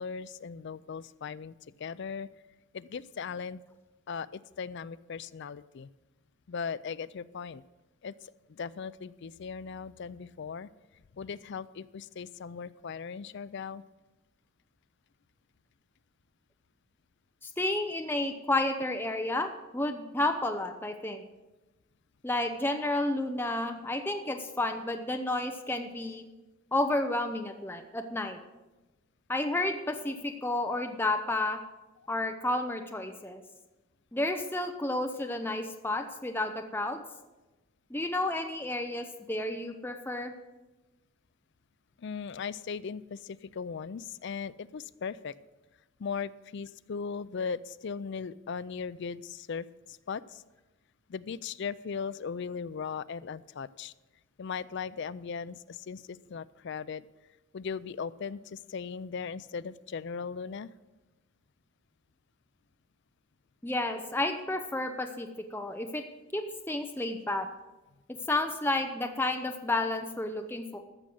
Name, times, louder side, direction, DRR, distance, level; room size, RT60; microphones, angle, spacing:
voice 1, 0.0-2.3 2.7-3.6 4.1-5.9 6.5-7.6 8.0-8.1 8.5-10.7 11.1-13.8 42.0-45.3 46.0-50.4 51.1-53.9 54.4-57.1 57.5-60.7, left 6 dB, 55° left, 16 dB, 0.4 m, -38 dB
voice 2, 17.4-21.2 22.2-26.3 26.7-28.4 29.3-31.6 32.1-33.4 34.1-37.0 37.9-40.3 63.6-66.0 66.3-67.5 68.3-70.8, left 2 dB, 10° left, 5 dB, 0.6 m, -31 dB
14.0 x 6.3 x 7.7 m, 1.1 s
head